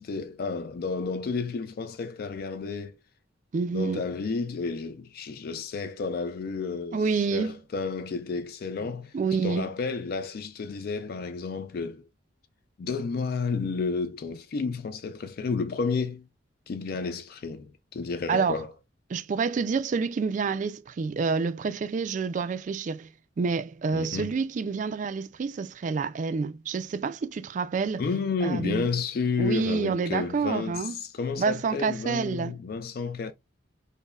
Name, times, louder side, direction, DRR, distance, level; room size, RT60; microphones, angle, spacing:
voice 1, 0.0-3.0 3.7-7.0 7.3-9.1 9.4-12.0 12.8-16.2 16.7-18.7 23.9-24.3 28.0-33.3, left 4 dB, 50° left, 0.3 m, -31 dB
voice 2, 3.5-4.0 6.9-7.6 9.1-9.7 18.3-18.6 19.1-23.1 23.4-28.0 28.4-28.9 29.4-31.0 31.4-32.5, right 5 dB, 40° right, 0.3 m, -28 dB
5.2 x 2.1 x 2.3 m
head